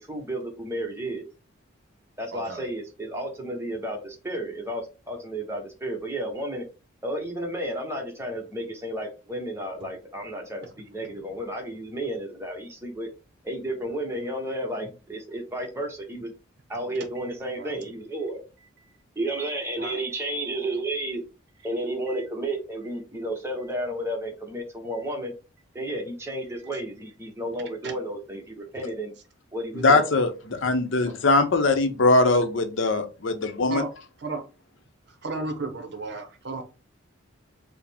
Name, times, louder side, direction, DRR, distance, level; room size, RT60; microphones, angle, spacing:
voice 1, 0.0-1.3 2.2-6.6 7.0-13.1 13.4-16.3 16.7-18.4 19.2-21.2 21.6-25.3 25.7-29.1 29.5-30.1, right 1 dB, 15° right, 0.8 m, -32 dB
voice 2, 2.3-2.6 17.2-17.3 17.6-17.7 19.3-20.0 22.1-22.2 27.8-27.9 31.0-31.3 33.7-33.9 34.2-34.4 35.2-36.6, right 3 dB, 55° right, 0.6 m, -35 dB
voice 3, 29.8-33.8, left 2 dB, 70° left, 0.7 m, -21 dB
4.8 x 2.1 x 3.4 m
head